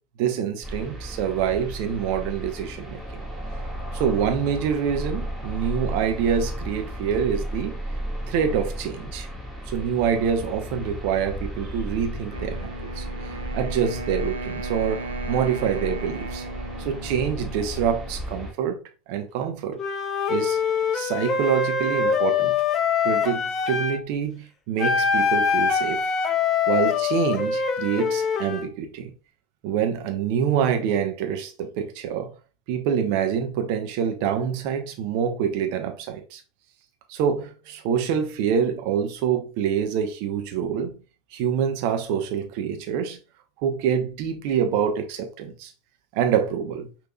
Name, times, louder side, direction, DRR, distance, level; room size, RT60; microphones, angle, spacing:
voice 1, 0.2-3.2 3.9-7.7 8.3-9.3 9.7-16.4 16.8-18.8 19.1-19.8 20.3-20.6 20.9-22.6 23.0-26.0 26.7-29.1 29.6-32.3 32.7-36.4 37.1-40.9 41.3-43.2 43.6-45.7 46.1-46.9, right 8 dB, 55° right, 0.8 m, -26 dB
sound 1, 0.6-18.5, equal, 5° right, 1.4 m, -34 dB
Wind instrument woodwind instrument, 12.3-18.3, right 2 dB, 85° right, 0.4 m, -36 dB
Wind instrument woodwind instrument 2, 19.8-24.0 24.8-28.7, left 6 dB, 30° left, 0.7 m, -24 dB
5.4 x 2.8 x 2.3 m
figure-of-eight pair, 80°, 0 cm